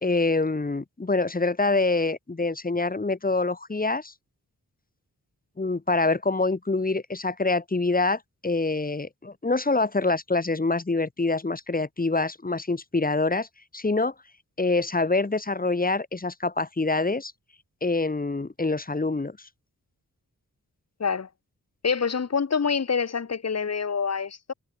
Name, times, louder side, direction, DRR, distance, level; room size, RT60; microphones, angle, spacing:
voice 1, 0.0-4.1 5.6-13.5 13.7-14.1 14.6-17.3 17.8-19.4, left 3 dB, 25° left, 1.5 m, -25 dB
voice 2, 21.8-24.5, left 6 dB, 50° left, 1.4 m, -26 dB
cardioid pair, 70°, 34 cm